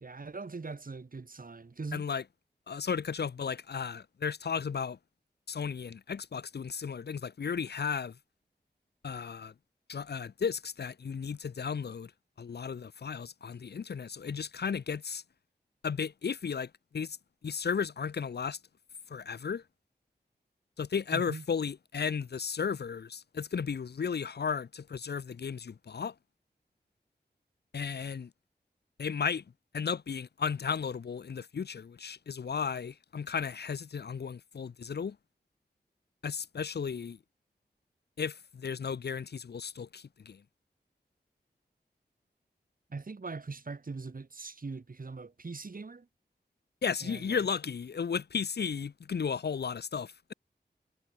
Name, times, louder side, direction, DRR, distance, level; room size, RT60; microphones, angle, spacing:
voice 1, 0.0-2.0 21.1-21.4 42.9-46.1 47.0-47.4, right 4 dB, 50° right, 1.8 m, -41 dB
voice 2, 1.9-2.2 2.7-5.0 5.5-8.2 9.0-9.5 9.9-12.1 12.4-15.2 15.8-17.2 17.4-18.6 19.1-19.6 20.8-26.1 27.7-28.3 29.0-29.4 29.7-35.2 36.2-37.2 38.2-40.4 46.8-50.3, left 6 dB, 65° left, 0.6 m, -34 dB
wide cardioid pair, 60°, 18 cm